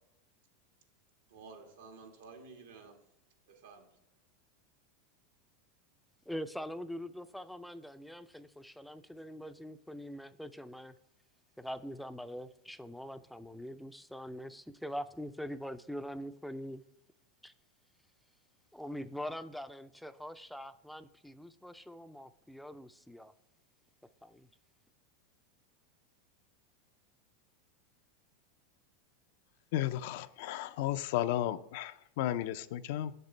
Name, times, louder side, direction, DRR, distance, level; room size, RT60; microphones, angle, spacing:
voice 1, 1.3-3.0 3.5-3.9, right 4 dB, 85° right, 1.7 m, -52 dB
voice 2, 6.3-10.9 11.6-16.8 17.4-17.5 18.7-23.3 24.2-24.5, equal, ahead, 0.4 m, -43 dB
voice 3, 29.7-33.1, left 12 dB, 65° left, 0.4 m, -34 dB
8.0 x 6.7 x 3.2 m
supercardioid pair, 120°, 0 cm